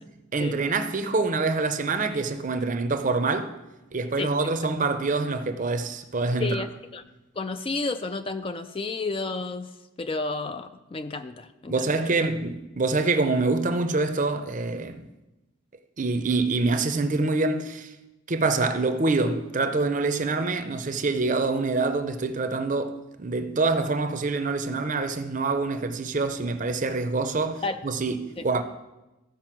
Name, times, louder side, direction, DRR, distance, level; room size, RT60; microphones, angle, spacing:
voice 1, 0.3-3.5 3.9-6.6 11.7-15.0 16.0-17.9 18.3-28.6, right 3 dB, 35° right, 0.6 m, -26 dB
voice 2, 6.4-7.0 7.4-9.7 10.0-12.2 27.6-27.8 28.4-28.5, left 3 dB, 25° left, 0.3 m, -31 dB
14.0 x 5.3 x 5.9 m
head